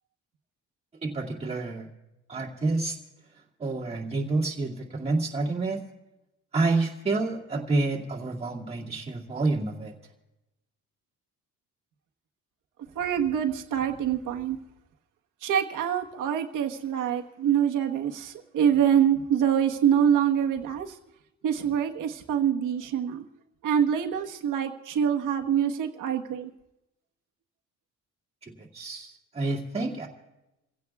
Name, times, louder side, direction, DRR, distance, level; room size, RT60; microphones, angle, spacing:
voice 1, 1.0-1.9 2.3-2.9 3.6-5.8 6.5-9.9 28.4-30.1, right 3 dB, 20° right, -3 dB, 2.2 m, -28 dB
voice 2, 12.9-14.6 15.4-21.0 21.4-23.2 23.6-26.5, right 9 dB, 75° right, 3 dB, 1.3 m, -25 dB
29.0 x 16.0 x 2.4 m, 0.96 s
cardioid pair, 150°, 32 cm